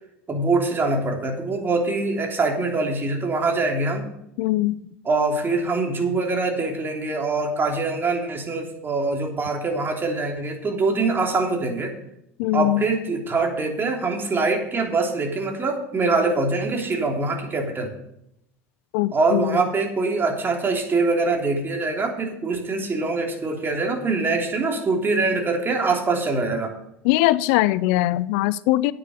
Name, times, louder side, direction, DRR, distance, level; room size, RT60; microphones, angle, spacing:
voice 1, 0.3-4.1 5.0-11.9 12.5-17.9 19.1-26.7, right 3 dB, 30° right, 2 dB, 3.2 m, -24 dB
voice 2, 4.4-4.8 12.4-12.8 18.9-19.6 27.0-28.9, left 17 dB, 65° left, 19 dB, 0.4 m, -21 dB
9.4 x 6.8 x 8.2 m, 0.77 s
hypercardioid pair, 80°, 8 cm